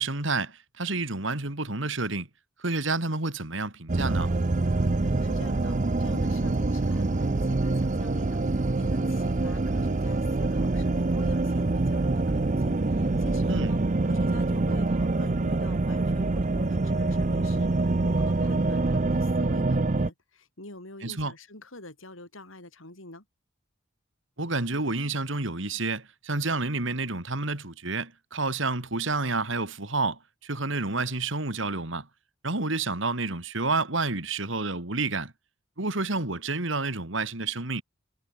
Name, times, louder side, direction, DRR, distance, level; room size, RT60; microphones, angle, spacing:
voice 1, 0.0-2.3 2.6-4.3 13.5-13.7 21.0-21.3 24.4-32.1 32.4-35.3 35.8-37.8, right 3 dB, 65° right, 2.9 m, -29 dB
sound 1, 3.9-20.1, right 2 dB, 35° right, 0.6 m, -25 dB
voice 2, 5.0-13.8 14.0-23.2, left 2 dB, 75° left, 6.9 m, -46 dB
head